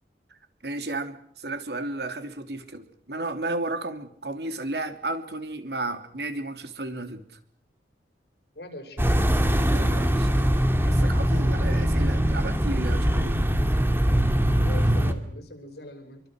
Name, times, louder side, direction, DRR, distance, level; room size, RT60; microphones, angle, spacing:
voice 1, 0.6-7.2 9.7-13.4, right 2 dB, 70° right, 8 dB, 3.2 m, -33 dB
voice 2, 8.5-9.2 14.5-16.2, left 1 dB, 65° left, 6 dB, 6.5 m, -41 dB
sound 1, 9.0-15.1, equal, 15° right, 2.3 m, -22 dB
27.5 x 25.0 x 6.5 m, 0.63 s
head